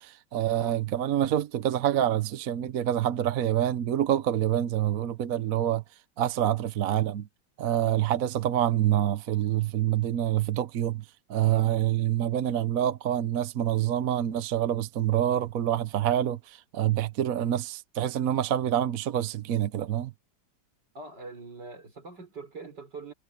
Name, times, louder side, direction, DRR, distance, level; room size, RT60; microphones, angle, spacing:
voice 1, 0.0-5.8 6.2-7.3 7.6-11.0 11.3-20.1, right 11 dB, 60° right, 1.2 m, -26 dB
voice 2, 21.0-23.1, right 3 dB, 85° right, 5.3 m, -43 dB
omnidirectional pair, 1.8 m